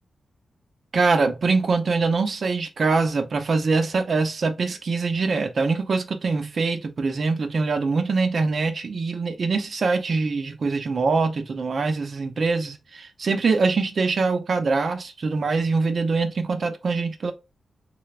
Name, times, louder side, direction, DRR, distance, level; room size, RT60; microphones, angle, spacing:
voice 1, 0.9-17.3, right 4 dB, 50° right, 0.7 m, -23 dB
3.8 x 3.3 x 2.4 m
wide cardioid pair, 150°, 0 cm